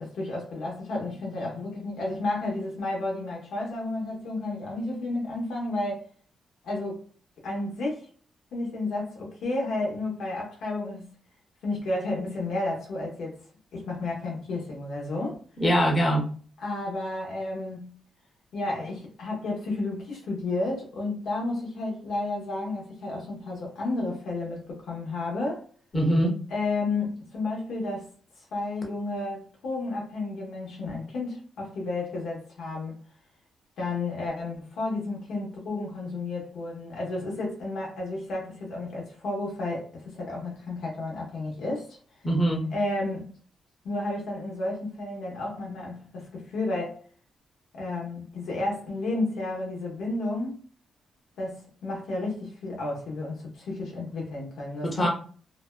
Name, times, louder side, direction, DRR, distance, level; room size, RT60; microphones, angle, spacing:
voice 1, 0.0-6.1 6.6-7.0 7.4-8.0 8.5-11.1 11.6-13.4 13.7-15.4 16.6-17.9 18.5-25.6 26.5-28.1 28.5-33.0 33.8-42.0 42.7-43.3 43.8-47.0 47.7-50.6 51.4-55.1, left 2 dB, 80° left, 0.9 m, -32 dB
voice 2, 15.6-16.3 25.9-26.3 42.2-42.6 54.8-55.1, equal, 25° left, 0.8 m, -22 dB
2.6 x 2.1 x 2.2 m
cardioid pair, 105°, 0 cm